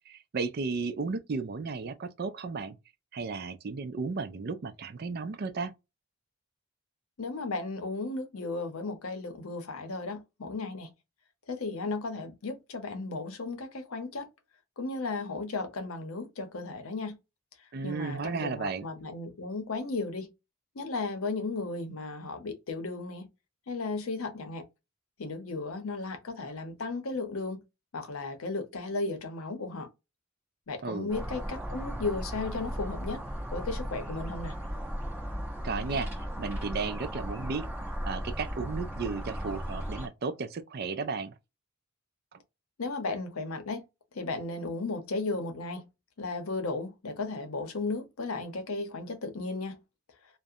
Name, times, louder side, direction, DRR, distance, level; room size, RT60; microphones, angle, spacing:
voice 1, 0.1-2.8 3.1-5.7 17.7-18.9 30.8-31.1 35.6-37.7 38.1-41.3, right 4 dB, 45° right, 0.4 m, -34 dB
voice 2, 7.2-10.9 11.5-14.2 14.8-17.1 17.8-20.3 20.8-23.2 23.7-24.6 25.2-27.6 27.9-29.9 30.7-33.2 33.5-34.5 42.8-43.8 44.1-45.9 46.2-49.8, left 3 dB, 85° left, 0.7 m, -35 dB
sound 1, 31.1-40.1, equal, 10° right, 0.9 m, -36 dB
2.4 x 2.1 x 2.7 m
head